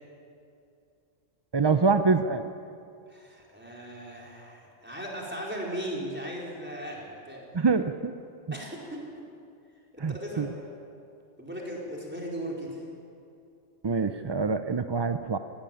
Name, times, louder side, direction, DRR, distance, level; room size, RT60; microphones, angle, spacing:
voice 1, 1.5-2.5 7.5-8.1 10.0-10.1 10.4-10.5 13.8-15.4, right 4 dB, 45° right, 9 dB, 0.3 m, -25 dB
voice 2, 3.1-7.4 8.5-9.1 9.9-10.5 11.4-12.9, equal, 10° right, -3 dB, 4.4 m, -37 dB
19.0 x 16.0 x 9.2 m, 2.5 s
omnidirectional pair, 1.3 m